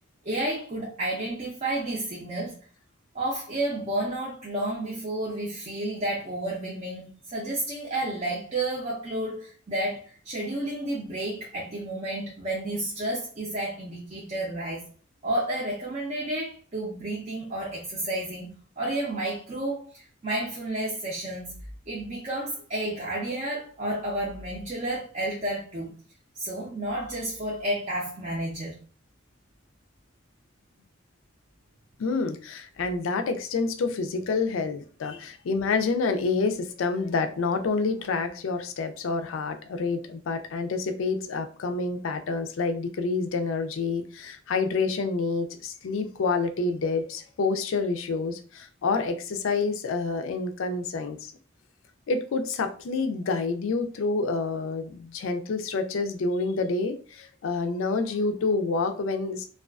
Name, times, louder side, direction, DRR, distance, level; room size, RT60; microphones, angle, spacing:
voice 1, 0.2-2.6 3.1-14.8 15.2-21.5 21.9-26.0 26.4-28.8, right 1 dB, 35° right, 0.6 m, -31 dB
voice 2, 32.0-51.3 52.1-59.5, left 4 dB, 80° left, 0.4 m, -28 dB
2.3 x 2.3 x 2.3 m
head